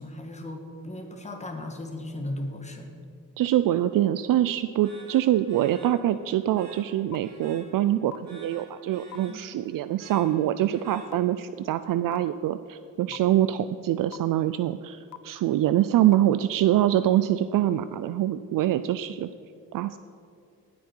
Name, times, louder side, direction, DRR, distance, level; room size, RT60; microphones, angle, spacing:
voice 1, 0.0-2.9 9.3-9.4, left 1 dB, 20° left, 4 dB, 1.7 m, -36 dB
voice 2, 3.4-19.3 19.7-20.0, right 12 dB, 70° right, 13 dB, 0.5 m, -24 dB
sound 1, 4.8-11.5, right 2 dB, 50° right, 3.4 m, -52 dB
sound 2, 7.1-7.2 8.1-8.2 9.1-9.2 10.1-10.2 11.1-11.2 12.1-12.2 13.1-13.2 14.1-14.2 15.1-15.2 16.1-16.2, left 12 dB, 60° left, 0.6 m, -39 dB
19.0 x 8.7 x 4.5 m, 2.5 s
cardioid pair, 135°, 33 cm